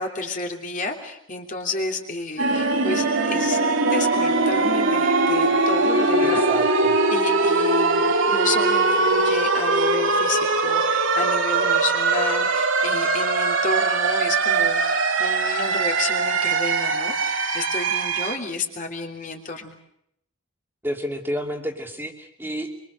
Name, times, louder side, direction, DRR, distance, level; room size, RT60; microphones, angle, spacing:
voice 1, 0.0-6.5 7.1-19.8, left 3 dB, 40° left, 3 dB, 3.2 m, -31 dB
sound 1, 2.4-18.4, right 3 dB, 70° right, 2.8 m, -21 dB
voice 2, 6.2-6.9 20.8-22.9, equal, 10° right, 2 dB, 2.8 m, -30 dB
25.5 x 24.5 x 6.7 m, 0.74 s
head